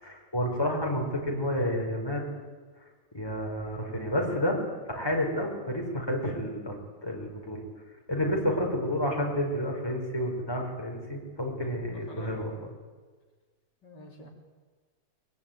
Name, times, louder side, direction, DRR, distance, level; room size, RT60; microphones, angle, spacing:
voice 1, 0.0-2.3 3.1-4.6 5.0-7.6 8.1-12.7, equal, 15° left, 0 dB, 5.3 m, -30 dB
voice 2, 12.1-12.5 13.8-14.3, left 1 dB, 90° left, 1 dB, 4.4 m, -48 dB
23.0 x 23.0 x 9.5 m, 1.4 s
omnidirectional pair, 1.8 m